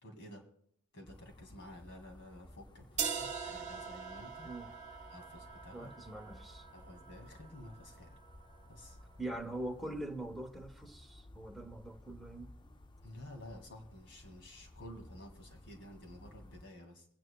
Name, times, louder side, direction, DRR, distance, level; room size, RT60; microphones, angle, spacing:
voice 1, 0.0-0.5 0.9-4.5 5.1-5.9 6.7-8.1 8.7-9.0 13.0-17.1, left 1 dB, 60° left, 2.3 m, -52 dB
sound 1, 1.0-16.7, left 1 dB, 20° left, 0.5 m, -57 dB
sound 2, 3.0-8.9, right 6 dB, 35° right, 1.1 m, -43 dB
voice 2, 5.7-6.6 9.2-12.5, right 1 dB, ahead, 0.9 m, -43 dB
25.0 x 9.2 x 2.3 m
head